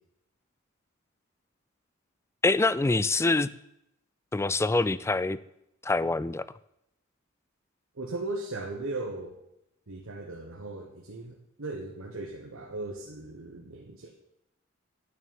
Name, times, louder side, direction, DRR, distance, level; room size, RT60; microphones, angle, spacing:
voice 1, 2.4-3.5 4.3-5.4 5.8-6.5, left 3 dB, 15° left, 17 dB, 0.3 m, -25 dB
voice 2, 8.0-9.4 9.9-14.2, right 2 dB, 85° right, 1 dB, 1.2 m, -37 dB
9.5 x 6.5 x 8.6 m, 0.81 s
head